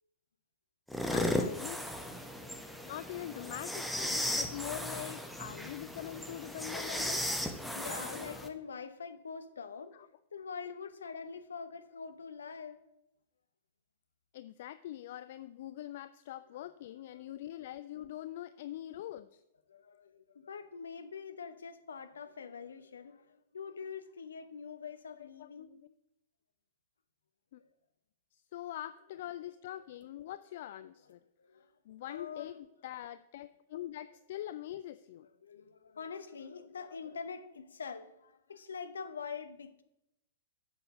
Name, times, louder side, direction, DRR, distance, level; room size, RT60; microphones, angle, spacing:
sound 1, 0.9-8.5, left 1 dB, ahead, 0.9 m, -36 dB
voice 1, 1.1-1.9 2.8-7.2 8.1-8.6 9.9-10.1 14.3-19.4 25.2-25.9 27.5-27.6 28.3-31.2 31.9-35.3, left 13 dB, 50° left, 0.3 m, -44 dB
voice 2, 2.4-2.9 7.7-10.0 10.3-12.8 17.1-17.2 19.7-25.7 27.5-27.7 29.7-29.8 31.4-31.7 32.1-32.6 35.2-39.8, left 6 dB, 65° left, 0.8 m, -45 dB
8.2 x 6.8 x 7.9 m
figure-of-eight pair, 100°, 0 cm